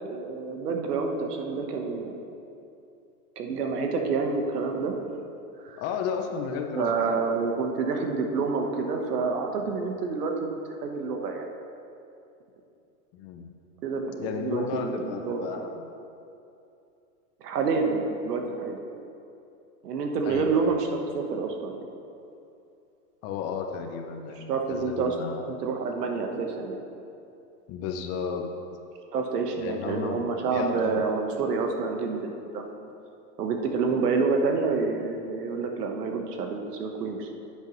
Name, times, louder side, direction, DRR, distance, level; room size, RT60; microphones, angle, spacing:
voice 1, 0.1-2.2 3.4-4.9 5.6-5.8 6.8-10.5 10.8-11.5 13.8-15.6 17.4-18.8 19.8-21.9 24.4-25.2 25.5-26.8 29.1-32.9 33.4-37.3, right 4 dB, 85° right, 3 dB, 1.3 m, -28 dB
voice 2, 5.8-6.9 13.1-13.5 14.2-15.8 20.3-20.8 23.2-25.5 27.7-28.5 29.6-31.0, left 6 dB, 35° left, 4 dB, 0.7 m, -33 dB
10.5 x 8.2 x 3.1 m, 2.7 s
hypercardioid pair, 130°, 46 cm